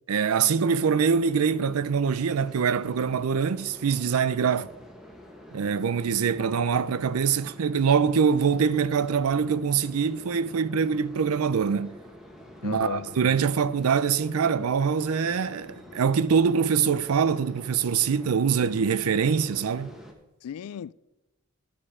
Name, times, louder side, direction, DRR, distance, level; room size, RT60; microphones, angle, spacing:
voice 1, 0.1-4.7 5.5-12.0 12.6-19.9, right 6 dB, 85° right, 0.5 m, -24 dB
sound 1, 0.9-20.1, left 1 dB, ahead, 1.2 m, -47 dB
voice 2, 12.6-13.1 20.4-20.9, left 8 dB, 90° left, 0.3 m, -36 dB
12.5 x 6.6 x 5.0 m
head